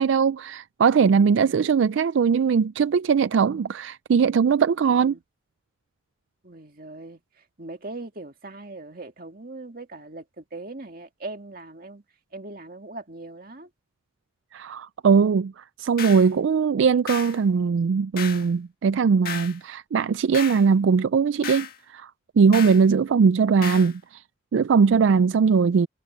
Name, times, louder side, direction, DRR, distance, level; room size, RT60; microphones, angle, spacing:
voice 1, 0.0-5.2 14.5-22.1 22.4-24.2 24.5-25.9, right 5 dB, 75° right, 0.4 m, -20 dB
voice 2, 4.9-5.2 6.4-12.0 12.3-13.7, right 2 dB, 50° right, 2.3 m, -40 dB
sound 1, 16.0-16.3 17.1-17.4 18.2-18.5 19.2-19.6 20.3-20.7 21.4-21.8 22.5-22.8 23.6-23.9, left 8 dB, 50° left, 1.8 m, -34 dB
head